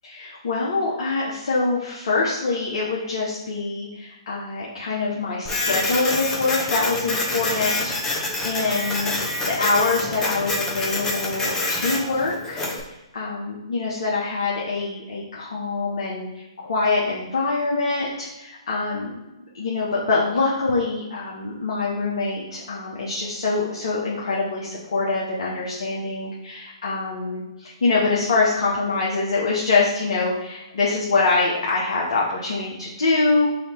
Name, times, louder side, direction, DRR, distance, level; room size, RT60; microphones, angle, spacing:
voice 1, 0.0-9.3 9.6-19.2 19.5-33.5, left 3 dB, 65° left, -4 dB, 0.9 m, -24 dB
Printer, 5.5-12.8, left 2 dB, 15° left, 0.8 m, -26 dB
3.4 x 2.8 x 4.4 m, 0.99 s
figure-of-eight pair, 125°, 3 cm